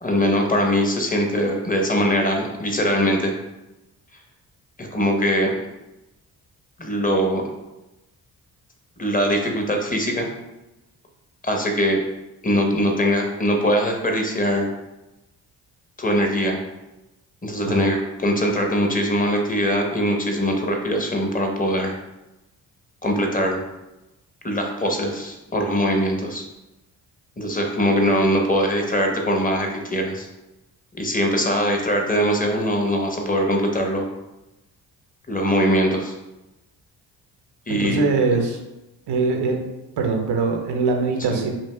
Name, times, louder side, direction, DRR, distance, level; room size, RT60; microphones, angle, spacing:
voice 1, 0.0-3.3 4.8-5.5 6.8-7.5 9.0-10.3 11.4-12.0 12.4-14.7 16.0-16.6 17.4-21.9 23.0-23.6 24.4-26.4 27.4-30.3 31.0-34.1 35.3-36.1 37.7-38.0 41.3-41.4, equal, 20° left, 2 dB, 0.9 m, -22 dB
voice 2, 37.7-38.6 39.1-39.6 40.0-41.5, right 4 dB, 65° right, 3 dB, 0.8 m, -22 dB
5.5 x 2.6 x 2.2 m, 0.99 s
hypercardioid pair, 45°, 44 cm